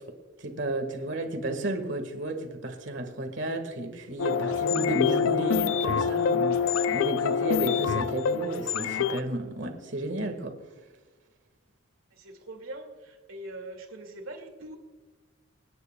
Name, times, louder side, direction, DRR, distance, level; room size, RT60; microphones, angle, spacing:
voice 1, 0.4-10.5, right 1 dB, 60° right, 4 dB, 1.6 m, -32 dB
sound 1, 4.2-9.2, left 6 dB, 75° left, 0.4 m, -26 dB
voice 2, 12.1-14.8, right 1 dB, 90° right, 4 dB, 2.2 m, -42 dB
28.0 x 9.6 x 2.2 m, 1.3 s
head